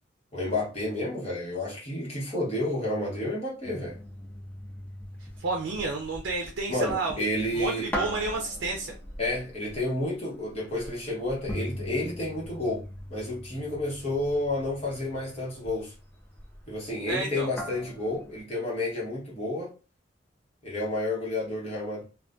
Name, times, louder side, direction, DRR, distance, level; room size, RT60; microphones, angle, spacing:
voice 1, 0.3-4.0 6.7-7.9 9.2-15.9 16.7-19.7 20.6-22.0, left 1 dB, 35° left, 1.0 m, -30 dB
sound 1, 3.6-18.4, equal, 10° left, 0.3 m, -41 dB
voice 2, 5.4-7.2 7.5-9.0 17.1-17.5, right 3 dB, 90° right, 0.4 m, -30 dB
2.5 x 2.2 x 2.2 m
head